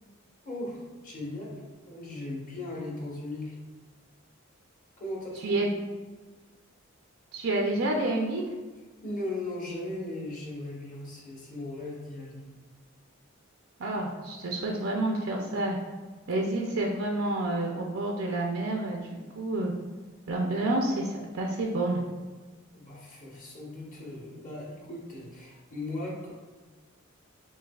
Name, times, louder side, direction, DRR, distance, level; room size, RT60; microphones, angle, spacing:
voice 1, 0.4-3.5 5.0-5.7 9.0-12.4 22.7-26.3, left 2 dB, 40° left, -4 dB, 1.2 m, -38 dB
voice 2, 7.3-8.5 13.8-15.8 16.3-19.0 19.3-19.7 20.3-22.0, right 2 dB, 80° right, 0 dB, 0.6 m, -29 dB
7.1 x 2.7 x 2.3 m, 1.3 s
head